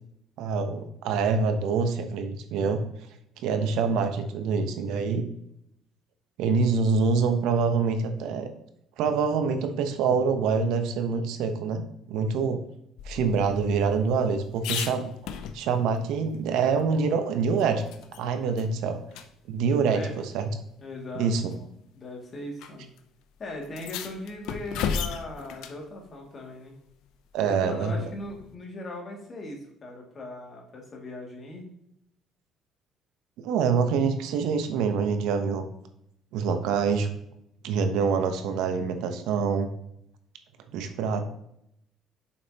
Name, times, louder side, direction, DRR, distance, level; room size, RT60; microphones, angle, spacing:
voice 1, 0.4-2.8 3.4-5.3 6.4-8.5 9.0-11.8 12.1-12.6 13.0-15.1 15.5-17.8 18.2-19.0 19.5-20.4 21.1-21.4 27.3-28.1 33.4-35.7 36.3-37.1 37.6-39.7 40.7-41.2, right 5 dB, 80° right, 7 dB, 0.9 m, -25 dB
sound 1, 13.0-16.0 16.3-16.4 16.8-18.2 18.6-18.7 19.1-19.3 20.3-20.4 21.3-21.6 22.6-22.7 23.0-23.1 23.6-25.8 28.1-28.5, left 7 dB, 80° left, 0.6 m, -35 dB
voice 2, 19.6-20.1 20.8-21.7 21.9-22.9 23.4-26.8 27.4-31.7, left 2 dB, 35° left, 0 dB, 2.3 m, -39 dB
6.8 x 5.4 x 2.9 m, 0.74 s
cardioid pair, 110°, 0 cm